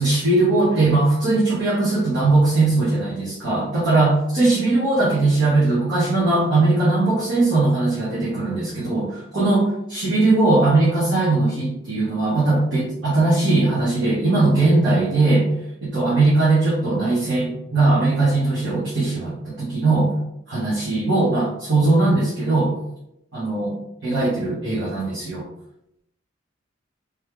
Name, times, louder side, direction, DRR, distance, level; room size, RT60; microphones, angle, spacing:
voice 1, 0.0-15.5 15.8-20.1 20.5-22.7 23.3-25.4, right 2 dB, 60° right, -10 dB, 1.4 m, -19 dB
3.4 x 3.3 x 3.3 m, 0.80 s
head